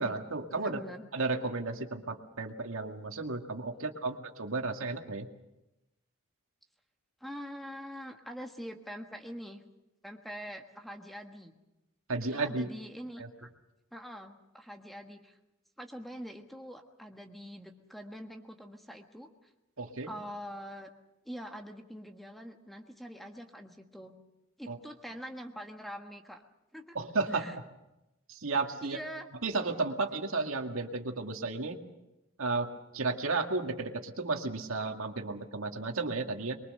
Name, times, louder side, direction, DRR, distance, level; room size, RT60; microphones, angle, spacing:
voice 1, 0.0-0.8 1.1-5.3 12.1-12.7 13.2-13.3 19.8-20.1 24.7-24.8 26.9-27.5 28.3-29.0 29.4-31.8 32.4-36.6, right 3 dB, 80° right, 4 dB, 2.1 m, -33 dB
voice 2, 0.5-1.1 3.7-4.2 7.2-9.6 10.0-11.6 12.3-13.5 13.9-15.4 15.8-19.5 20.1-20.9 21.2-24.1 24.6-26.4 26.7-27.0 27.3-27.5 28.8-29.3, equal, ahead, 4 dB, 1.5 m, -44 dB
23.5 x 23.0 x 6.7 m, 0.93 s
head